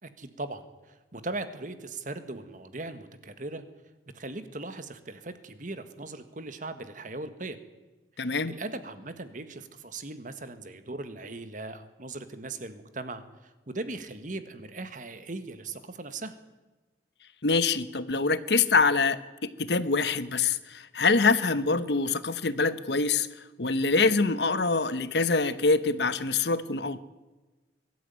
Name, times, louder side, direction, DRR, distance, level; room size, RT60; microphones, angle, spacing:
voice 1, 0.0-3.6 4.1-7.6 8.2-16.3, right 2 dB, 45° right, 10 dB, 1.6 m, -39 dB
voice 2, 8.2-8.5 17.4-23.3 23.6-27.0, left 4 dB, 70° left, 14 dB, 1.0 m, -25 dB
22.0 x 12.5 x 9.3 m, 1.2 s
head